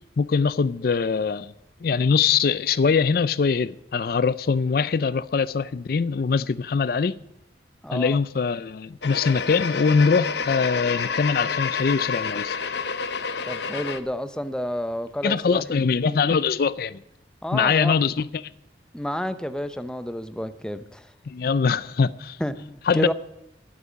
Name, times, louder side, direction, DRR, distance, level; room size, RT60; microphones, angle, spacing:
voice 1, 0.2-1.5 1.8-7.2 7.9-12.6 15.2-17.0 17.5-18.3 21.3-22.4 22.9-23.1, left 5 dB, 55° left, 0.4 m, -22 dB
voice 2, 7.8-8.2 13.4-15.6 16.0-16.4 17.4-18.0 18.9-21.1 22.4-23.1, equal, 5° left, 0.6 m, -30 dB
sound 1, 9.0-14.0, left 5 dB, 75° left, 0.9 m, -29 dB
12.5 x 8.3 x 9.1 m
head